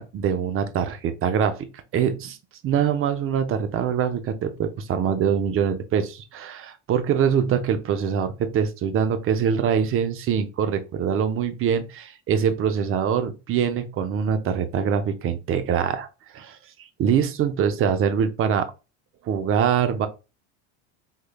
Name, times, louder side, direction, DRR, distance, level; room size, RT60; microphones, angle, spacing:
voice 1, 0.0-1.6 1.9-2.4 2.6-16.1 16.3-16.6 17.0-18.7 19.3-20.1, right 7 dB, 35° right, 0.6 m, -23 dB
3.7 x 3.1 x 2.3 m
supercardioid pair, 115°, 39 cm